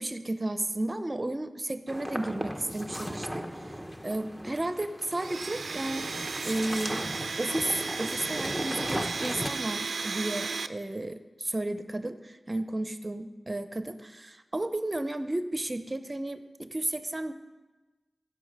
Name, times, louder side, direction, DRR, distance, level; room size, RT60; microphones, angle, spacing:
voice 1, 0.0-3.5 4.0-6.1 6.4-7.1 7.4-17.3, right 1 dB, 30° right, 10 dB, 0.7 m, -33 dB
sound 1, 1.9-9.5, equal, 5° left, 1.0 m, -37 dB
Domestic sounds home sounds, 5.2-10.7, right 4 dB, 85° right, 0.4 m, -34 dB
15.0 x 5.6 x 6.6 m, 1.2 s
wide cardioid pair, 65°, 0 cm